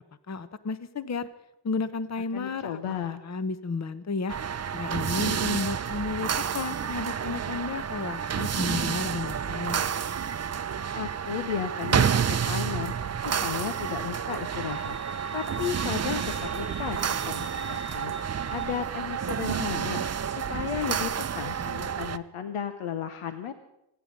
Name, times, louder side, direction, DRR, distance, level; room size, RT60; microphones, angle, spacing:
voice 1, 0.3-1.3 1.6-4.4 4.7-9.9, left 4 dB, 35° left, 13 dB, 1.0 m, -32 dB
voice 2, 2.3-3.2 11.0-15.0 15.3-20.0 20.3-23.5, left 8 dB, 85° left, 9 dB, 1.1 m, -34 dB
sound 1, 4.3-22.2, right 7 dB, 30° right, 0.7 m, -30 dB
Wind instrument woodwind instrument, 14.3-18.9, left 2 dB, 50° left, 2.4 m, -48 dB
26.0 x 9.8 x 5.3 m, 0.84 s
cardioid pair, 55°, 50 cm